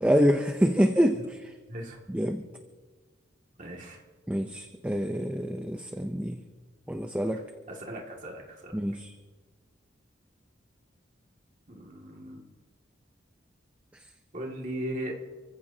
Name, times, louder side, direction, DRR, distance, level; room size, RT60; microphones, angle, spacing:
voice 1, 0.0-1.5 2.1-2.4 4.3-6.4 6.9-7.4 8.7-9.1, equal, 5° right, 5 dB, 0.6 m, -26 dB
voice 2, 3.6-4.0 7.7-8.7 11.7-12.4 14.3-15.1, right 1 dB, 40° right, -1 dB, 2.2 m, -37 dB
29.5 x 15.0 x 2.8 m, 1.5 s
head